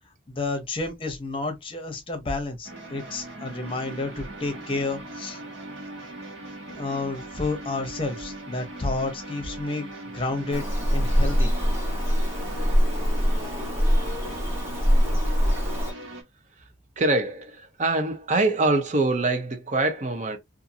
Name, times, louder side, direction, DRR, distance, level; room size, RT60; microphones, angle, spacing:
voice 1, 0.3-5.4 6.7-10.6 10.9-11.5, left 3 dB, 30° left, 0.7 m, -30 dB
sound 1, 2.6-16.2, right 1 dB, 80° right, 1.1 m, -40 dB
Bird vocalization bird call bird song, 10.5-15.9, equal, 15° right, 0.9 m, -23 dB
voice 2, 17.0-20.4, right 2 dB, 40° right, 0.6 m, -24 dB
2.6 x 2.4 x 2.5 m
head